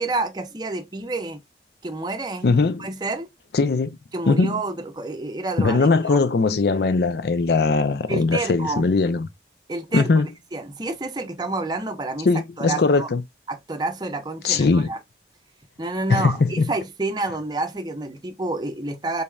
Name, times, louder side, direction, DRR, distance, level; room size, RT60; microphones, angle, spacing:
voice 1, 0.0-1.4 1.8-3.3 4.1-6.2 8.1-8.9 9.7-10.1 10.5-12.3 12.6-13.1 13.5-15.0 15.8-19.2, right 2 dB, 25° right, 0.6 m, -29 dB
voice 2, 2.4-2.9 3.5-4.0 4.3-4.6 5.6-9.3 9.9-10.3 12.2-13.2 14.4-14.9 16.1-16.7, left 4 dB, 60° left, 0.4 m, -20 dB
4.0 x 3.3 x 2.3 m
head